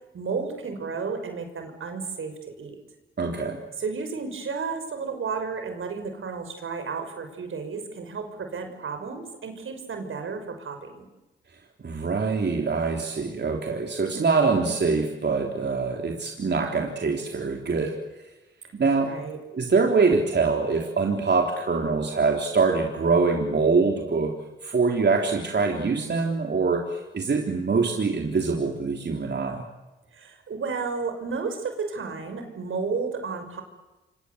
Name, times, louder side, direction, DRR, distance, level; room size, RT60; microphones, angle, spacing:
voice 1, 0.1-2.8 3.8-11.1 19.0-19.4 30.1-33.6, right 5 dB, 75° right, 7 dB, 6.0 m, -32 dB
voice 2, 3.2-3.6 11.8-18.2 18.8-19.1 19.5-24.3 24.6-29.6, right 4 dB, 55° right, 1 dB, 3.8 m, -24 dB
27.5 x 25.0 x 8.2 m, 1.1 s
supercardioid pair, 50°, 21 cm